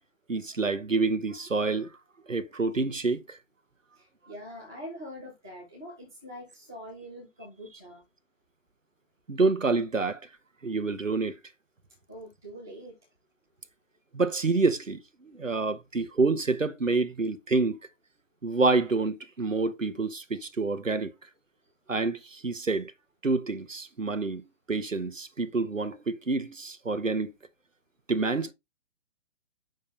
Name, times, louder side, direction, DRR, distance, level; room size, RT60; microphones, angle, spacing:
voice 1, 0.3-1.9 2.3-3.4 9.3-10.2 10.6-11.4 14.1-17.8 18.4-21.1 21.9-22.9 23.2-24.4 24.7-27.3 28.1-28.5, right 3 dB, 85° right, 1.2 m, -27 dB
voice 2, 3.9-8.0 12.1-13.0 15.4-15.5, equal, 5° right, 0.4 m, -44 dB
6.5 x 5.6 x 3.3 m
figure-of-eight pair, 130°, 38 cm